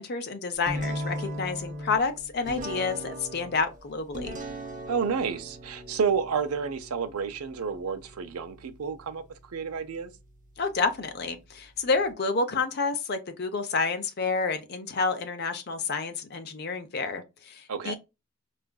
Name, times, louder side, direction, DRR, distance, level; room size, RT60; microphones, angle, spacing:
voice 1, 0.0-4.4 10.6-17.9, left 4 dB, 45° left, 0.6 m, -29 dB
sound 1, 0.7-12.1, equal, 35° right, 0.7 m, -40 dB
voice 2, 4.9-9.2 9.5-10.1 17.7-17.9, right 6 dB, 80° right, 0.5 m, -30 dB
4.7 x 2.4 x 2.2 m
head